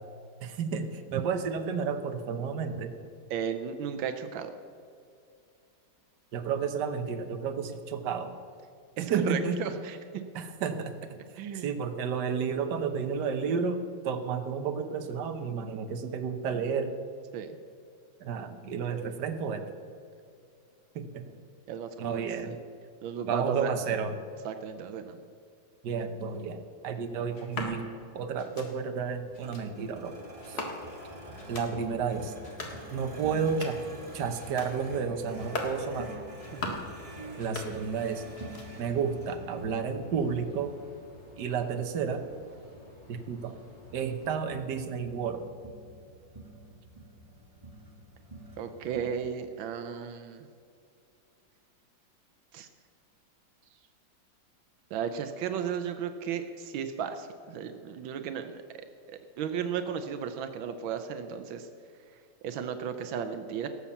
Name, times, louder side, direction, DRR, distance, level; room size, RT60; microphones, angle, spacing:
voice 1, 0.4-2.9 6.3-8.3 9.1-9.6 10.3-11.2 11.5-16.9 18.2-19.7 20.9-21.3 22.0-22.5 23.3-24.1 25.8-27.8 28.1-30.2 30.5-30.6 31.5-32.3 32.9-33.8 34.1-36.1 37.4-38.2 38.8-40.7 41.4-42.2 43.1-43.6 43.9-45.4, right 6 dB, 65° right, 7 dB, 1.6 m, -31 dB
voice 2, 3.3-4.5 9.0-10.2 11.4-11.7 17.3-17.5 21.7-22.6 23.0-23.7 24.4-25.2 30.5-30.7 36.5-36.8 48.6-50.4 52.5-52.7 54.9-61.7 62.4-63.7, right 7 dB, 85° right, 8 dB, 1.5 m, -35 dB
sound 1, 27.3-27.7 28.4-28.7 29.3-29.6 30.4-31.0 31.3-31.7 32.3-32.8 33.3-33.9 34.4-34.7 35.3-35.8 36.3-36.9 37.3-38.1 38.3-38.9, left 2 dB, 55° left, 2.2 m, -39 dB
sound 2, 29.1-49.0, right 1 dB, 20° right, 1.4 m, -47 dB
sound 3, 30.8-44.4, left 2 dB, 35° left, 3.5 m, -55 dB
17.5 x 7.2 x 7.0 m, 2.4 s
omnidirectional pair, 2.1 m